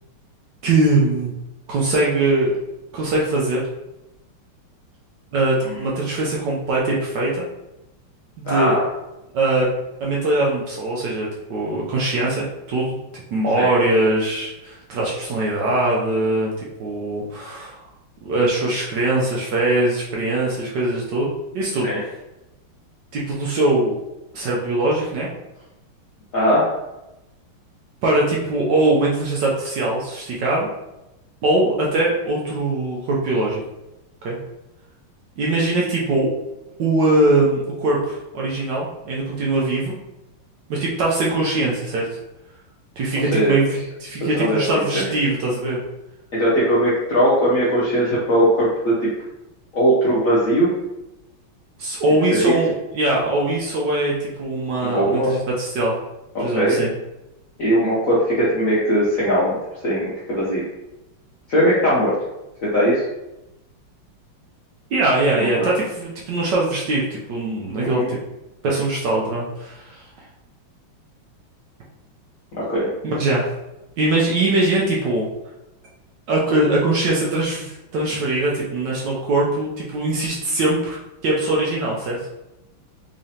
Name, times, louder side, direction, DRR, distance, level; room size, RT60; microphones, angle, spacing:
voice 1, 0.6-1.3 1.7-2.5 2.9-3.6 5.3-7.5 8.4-8.8 9.3-9.7 10.0-16.5 16.8-17.8 18.2-21.3 21.5-21.9 23.1-24.0 24.3-25.3 28.0-30.7 31.4-33.6 34.2-34.4 35.4-36.3 36.8-39.9 40.7-42.1 43.0-45.8 51.8-56.0 56.4-56.9 64.9-68.2 68.6-70.0 73.0-73.4 74.0-75.3 76.3-82.2, right 2 dB, 70° right, -4 dB, 1.1 m, -21 dB
voice 2, 8.4-8.8 13.6-13.7 21.8-22.0 26.3-26.6 43.3-43.5 44.4-44.6 44.9-45.1 46.3-49.1 49.7-50.7 52.4-52.5 54.9-55.3 56.3-56.8 57.6-59.6 59.8-60.6 61.5-62.1 62.6-63.0 65.6-65.7 67.8-68.1 72.6-72.9, equal, 65° left, -7 dB, 0.8 m, -19 dB
3.7 x 3.2 x 2.7 m, 0.95 s
omnidirectional pair, 2.4 m